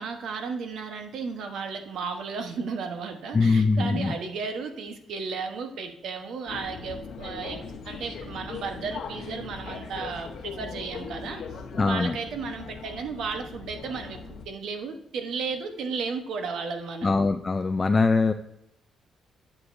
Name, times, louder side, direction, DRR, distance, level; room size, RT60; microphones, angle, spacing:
voice 1, 0.0-7.6 7.8-11.4 11.8-17.1, right 5 dB, 75° right, 5 dB, 1.1 m, -34 dB
voice 2, 3.3-4.1 11.7-12.2 17.0-18.3, left 4 dB, 30° left, 7 dB, 0.4 m, -22 dB
sound 1, 6.5-14.5, left 5 dB, 65° left, 1.0 m, -39 dB
9.6 x 6.4 x 2.7 m, 0.77 s
cardioid pair, 90°, 0 cm